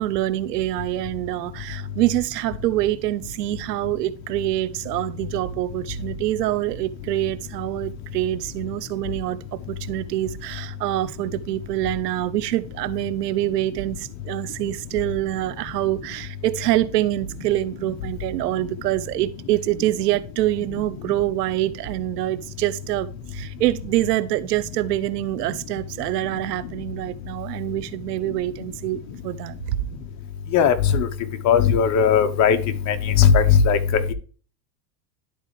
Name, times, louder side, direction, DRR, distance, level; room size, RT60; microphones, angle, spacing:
voice 1, 0.0-29.8, right 15 dB, 75° right, 0.9 m, -25 dB
voice 2, 30.5-31.1 31.4-32.6 32.9-34.1, left 7 dB, 35° left, 1.0 m, -17 dB
12.0 x 4.3 x 3.2 m
supercardioid pair, 135°, 48 cm